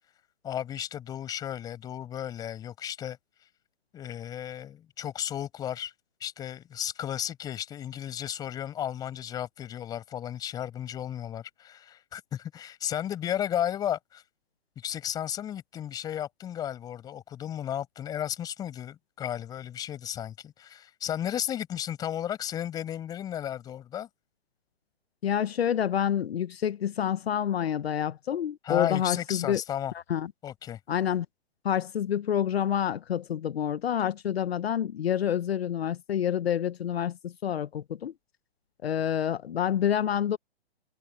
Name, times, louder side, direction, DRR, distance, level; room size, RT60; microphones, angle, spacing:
voice 1, 0.4-3.2 3.9-5.9 6.2-14.2 14.8-24.1 28.6-29.9 30.4-30.8, left 10 dB, 10° left, 5.2 m, -34 dB
voice 2, 25.2-29.6 29.9-30.3 30.9-31.3 31.6-38.1 38.8-40.4, left 9 dB, 75° left, 0.9 m, -28 dB
hypercardioid pair, 165°, 31 cm